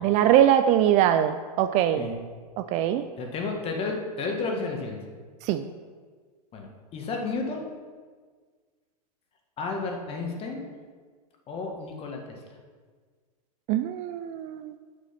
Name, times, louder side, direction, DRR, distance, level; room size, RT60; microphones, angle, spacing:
voice 1, 0.0-2.1 2.6-3.0 5.4-5.6 13.7-14.7, right 11 dB, 35° right, 10 dB, 0.4 m, -22 dB
voice 2, 3.2-5.0 6.5-7.6 9.6-10.7 11.5-12.4, left 3 dB, 30° left, 2 dB, 1.6 m, -32 dB
6.9 x 6.0 x 5.8 m, 1.6 s
hypercardioid pair, 120°, 20 cm